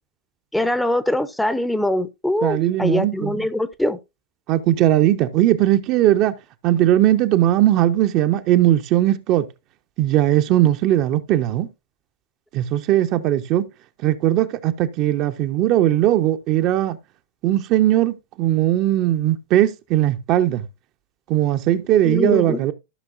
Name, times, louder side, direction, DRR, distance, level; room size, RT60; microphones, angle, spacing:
voice 1, 0.5-4.0 22.0-22.6, left 1 dB, 5° left, 0.7 m, -22 dB
voice 2, 2.4-3.3 4.5-6.4 6.6-9.5 10.0-11.7 12.5-13.7 14.0-17.0 17.4-20.6 21.3-22.7, right 13 dB, 40° right, 0.7 m, -19 dB
14.5 x 6.0 x 2.5 m
figure-of-eight pair, 90°, 0 cm